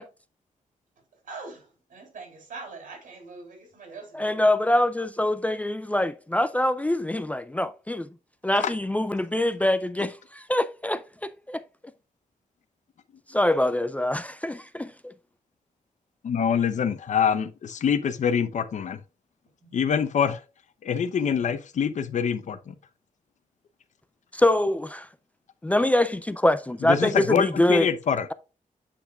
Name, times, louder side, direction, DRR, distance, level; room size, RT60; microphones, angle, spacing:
voice 1, 1.2-4.4 19.6-20.0, right 4 dB, 80° right, 3.3 m, -43 dB
voice 2, 4.1-8.1 8.4-11.6 13.3-15.1 24.3-25.1 25.6-27.9, left 1 dB, 10° left, 0.3 m, -24 dB
voice 3, 16.2-19.0 19.7-20.4 20.8-22.7 26.9-28.3, left 7 dB, 65° left, 0.7 m, -25 dB
8.4 x 5.8 x 2.3 m
wide cardioid pair, 150°, 14 cm